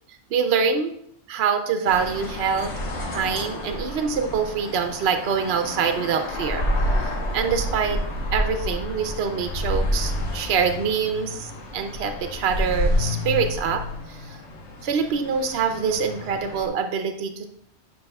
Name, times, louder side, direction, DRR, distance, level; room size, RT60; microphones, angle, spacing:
voice 1, 0.3-0.9 1.3-2.7 3.1-6.6 7.3-8.0 8.3-13.8 14.1-14.4 14.8-17.5, right 6 dB, 70° right, 7 dB, 0.9 m, -25 dB
sound 1, 1.8-16.7, left 1 dB, 85° left, 1.4 m, -29 dB
9.6 x 5.6 x 2.3 m, 0.71 s
omnidirectional pair, 1.1 m